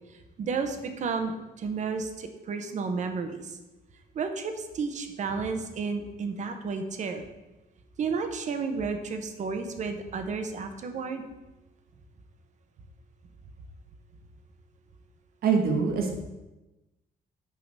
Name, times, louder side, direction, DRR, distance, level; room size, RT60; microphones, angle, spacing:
voice 1, 0.4-1.3 1.6-3.6 4.1-7.2 8.0-11.3, right 5 dB, 45° right, 7 dB, 1.0 m, -32 dB
voice 2, 15.4-16.2, right 5 dB, 65° right, 3 dB, 1.6 m, -24 dB
9.2 x 3.9 x 6.5 m, 1.0 s
cardioid pair, 155°, 17 cm